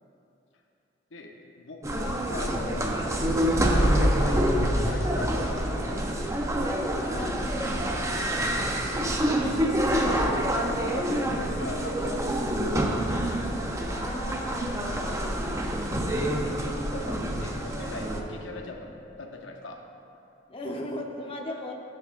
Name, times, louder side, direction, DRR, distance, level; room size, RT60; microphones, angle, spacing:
voice 1, 1.1-3.0 3.7-3.8 4.1-6.4 8.4-8.8 9.6-10.2 10.5-12.9 16.4-18.9 19.2-19.8, left 2 dB, 80° left, 2 dB, 0.9 m, -41 dB
sound 1, 1.8-18.2, equal, 15° right, 0.7 m, -26 dB
voice 2, 7.1-8.4 13.8-16.0 20.5-21.7, left 1 dB, 30° left, 0 dB, 0.9 m, -38 dB
15.5 x 8.4 x 2.5 m, 2.8 s
head